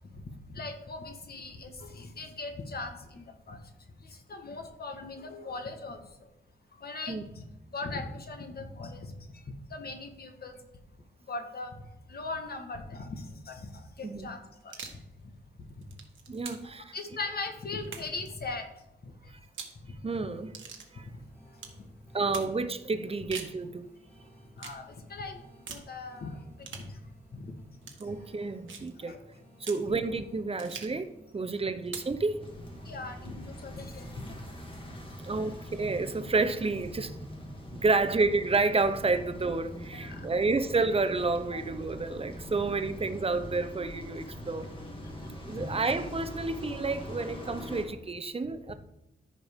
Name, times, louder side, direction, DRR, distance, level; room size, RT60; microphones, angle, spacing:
voice 1, 0.5-3.6 4.0-6.0 6.8-7.4 7.7-9.4 9.7-10.5 11.3-11.8 12.1-14.7 15.8-15.9 16.6-18.7 19.0-19.1 19.8-19.9 24.6-25.4 25.7-27.0 27.3-27.5 29.0-29.2 32.8-34.4 39.9-40.3 41.5-41.6 42.6-42.7 45.5-45.7, left 3 dB, 55° left, 1.4 m, -40 dB
sound 1, 14.6-15.0 15.7-16.8 17.8-18.3 19.4-19.8 20.5-20.9 21.6-21.8 22.3-22.5 23.1-23.6 24.6-24.8 25.7-25.9 26.6-26.9 27.8-28.0 28.7-28.9 29.6-29.9 30.6-31.0 31.8-32.2, right 6 dB, 80° right, 1.4 m, -43 dB
voice 2, 16.3-16.9 20.0-20.5 20.9-21.1 22.1-23.9 28.0-29.1 29.6-32.4 35.2-44.7 45.5-48.7, right 3 dB, 30° right, 0.7 m, -30 dB
sound 2, 20.1-36.1, equal, 10° left, 2.7 m, -56 dB
sound 3, 32.4-47.8, equal, 25° left, 1.9 m, -43 dB
14.0 x 5.3 x 3.6 m
wide cardioid pair, 105°, 20 cm